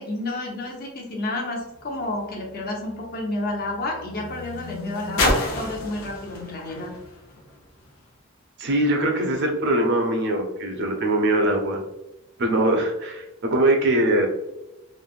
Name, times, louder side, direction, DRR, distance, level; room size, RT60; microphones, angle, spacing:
voice 1, 0.0-6.9, left 2 dB, 45° left, 0 dB, 0.6 m, -30 dB
sound 1, 1.6-8.2 9.0-9.1, left 2 dB, 85° left, 0.7 m, -31 dB
voice 2, 8.6-11.8 12.4-14.3, right 1 dB, 55° right, 2 dB, 0.5 m, -22 dB
3.1 x 2.0 x 2.4 m, 0.94 s
head